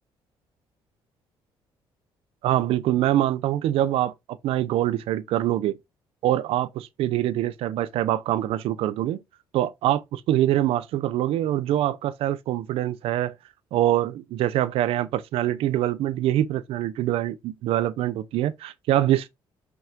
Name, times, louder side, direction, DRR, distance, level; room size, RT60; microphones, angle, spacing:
voice 1, 2.4-4.1 4.4-5.8 6.2-9.2 9.5-13.3 13.7-19.3, right 13 dB, 85° right, 0.7 m, -24 dB
5.5 x 5.4 x 3.7 m
cardioid pair, 120°, 10 cm